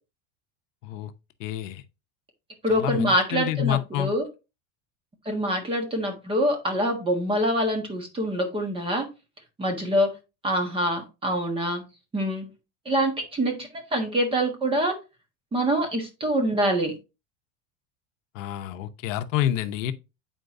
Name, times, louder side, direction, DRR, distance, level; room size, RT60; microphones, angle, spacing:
voice 1, 1.4-1.8 2.7-4.1 18.3-19.9, left 12 dB, 80° left, 0.9 m, -28 dB
voice 2, 2.6-4.2 5.2-9.0 9.6-10.1 10.4-11.8 12.1-12.5 12.8-15.0 15.5-16.9, equal, 15° right, 1.4 m, -25 dB
9.1 x 4.5 x 2.6 m
cardioid pair, 170°, 38 cm